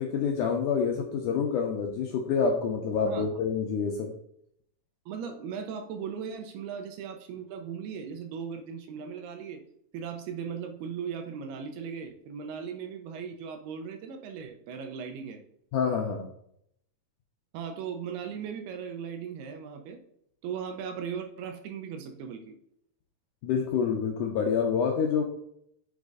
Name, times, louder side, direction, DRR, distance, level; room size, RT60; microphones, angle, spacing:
voice 1, 0.0-4.1 15.7-16.3 23.4-25.2, left 6 dB, 75° left, 1 dB, 2.0 m, -27 dB
voice 2, 5.1-9.6 9.9-15.4 17.5-20.0 20.4-22.6, right 7 dB, 80° right, 5 dB, 3.0 m, -38 dB
8.3 x 7.3 x 2.6 m, 0.71 s
omnidirectional pair, 4.5 m